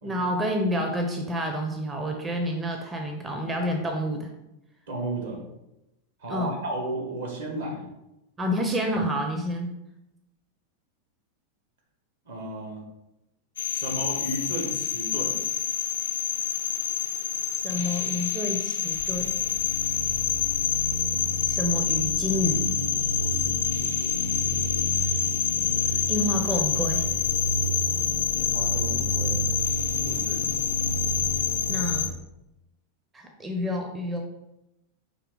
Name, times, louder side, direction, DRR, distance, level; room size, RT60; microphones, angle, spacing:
voice 1, 0.0-4.3 6.3-6.5 8.4-9.7 17.5-19.4 21.1-22.7 25.0-25.1 25.9-27.1 31.7-32.1 33.1-34.2, equal, 15° right, 2 dB, 0.5 m, -29 dB
voice 2, 4.9-5.4 6.2-7.9 12.2-12.8 13.7-15.4 23.2-23.5 28.3-29.4 30.0-30.4, right 1 dB, 65° right, 0 dB, 1.3 m, -34 dB
sound 1, 13.6-32.1, left 6 dB, 65° left, 0.4 m, -26 dB
5.0 x 2.7 x 3.8 m, 0.90 s
figure-of-eight pair, 90°, 0 cm